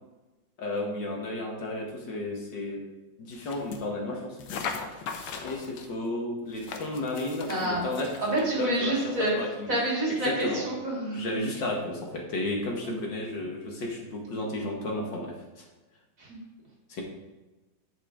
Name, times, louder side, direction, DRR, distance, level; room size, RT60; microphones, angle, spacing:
voice 1, 0.6-2.8 3.2-4.6 5.4-8.1 8.5-9.7 10.1-10.6 11.1-15.6 16.9-17.0, left 2 dB, 65° left, 0 dB, 2.3 m, -33 dB
sound 1, 3.3-3.9 4.4-5.9 6.5-8.5, left 5 dB, 85° left, 1.7 m, -39 dB
voice 2, 7.5-7.8 8.2-9.3 9.7-11.4 12.8-12.9 16.2-16.3, right 1 dB, 40° right, -3 dB, 3.3 m, -28 dB
10.0 x 8.1 x 3.7 m, 1.1 s
omnidirectional pair, 2.1 m